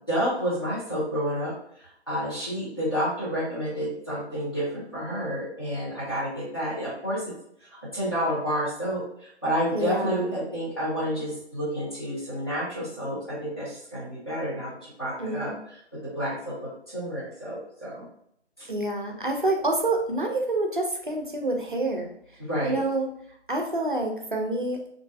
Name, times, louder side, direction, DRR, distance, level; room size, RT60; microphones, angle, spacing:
voice 1, 0.1-1.5 2.1-7.2 7.9-9.0 9.4-15.5 16.0-18.0 18.6-18.7 22.5-22.8, equal, 20° left, -10 dB, 0.8 m, -29 dB
voice 2, 9.7-10.4 15.2-15.6 18.7-22.1 22.6-23.1 23.5-24.8, right 2 dB, 45° right, 2 dB, 0.4 m, -27 dB
2.6 x 2.2 x 2.2 m, 0.70 s
figure-of-eight pair, 160°, 34 cm